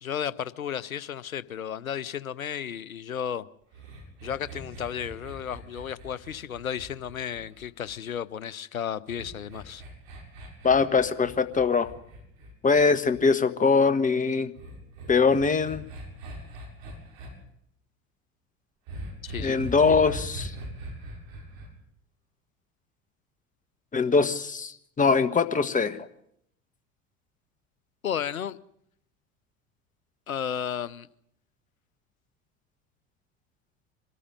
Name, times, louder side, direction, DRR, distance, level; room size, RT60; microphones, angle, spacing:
voice 1, 0.0-3.5 4.2-9.8 19.2-19.6 28.0-28.6 30.3-31.1, left 9 dB, 85° left, 0.8 m, -33 dB
sound 1, 3.7-8.1 9.1-13.2 14.5-17.3 18.9-21.7, right 1 dB, 55° right, 7.4 m, -41 dB
voice 2, 10.6-11.9 12.6-14.5 15.1-15.9 19.4-20.5 23.9-26.0, left 4 dB, 20° left, 1.5 m, -22 dB
24.0 x 13.5 x 9.7 m
figure-of-eight pair, 70°, 40 cm